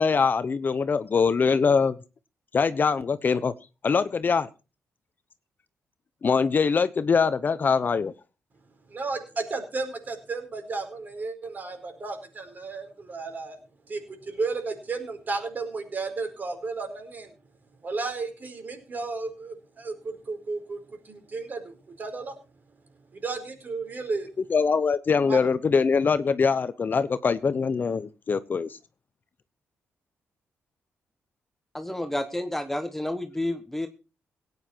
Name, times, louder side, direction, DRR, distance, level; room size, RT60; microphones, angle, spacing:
voice 1, 0.0-2.0 2.5-3.5 3.8-4.5 6.2-8.1 24.5-28.7, left 5 dB, 40° left, 14 dB, 0.8 m, -23 dB
voice 2, 8.9-13.6 13.9-17.3 17.8-20.8 21.0-22.3 23.1-24.3 25.3-25.4, right 3 dB, 40° right, 5 dB, 4.8 m, -33 dB
voice 3, 31.7-33.9, left 1 dB, 5° left, 7 dB, 1.3 m, -30 dB
17.5 x 9.5 x 4.5 m, 0.32 s
cardioid pair, 110°, 5 cm